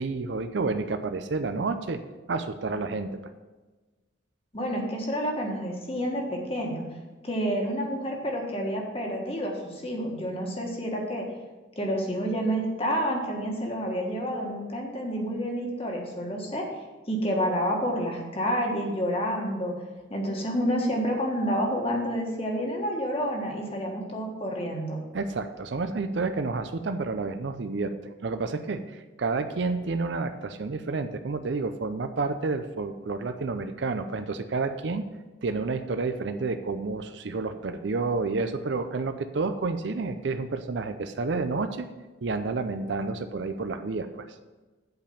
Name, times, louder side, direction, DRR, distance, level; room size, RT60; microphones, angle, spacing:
voice 1, 0.0-2.0 2.3-3.2 25.1-35.1 35.4-41.9 42.2-44.3, right 3 dB, 60° right, 9 dB, 0.5 m, -30 dB
voice 2, 4.5-6.8 7.2-11.3 11.8-16.7 17.1-19.7 20.1-25.0, equal, 30° left, 0 dB, 1.5 m, -29 dB
8.1 x 5.1 x 6.9 m, 1.2 s
head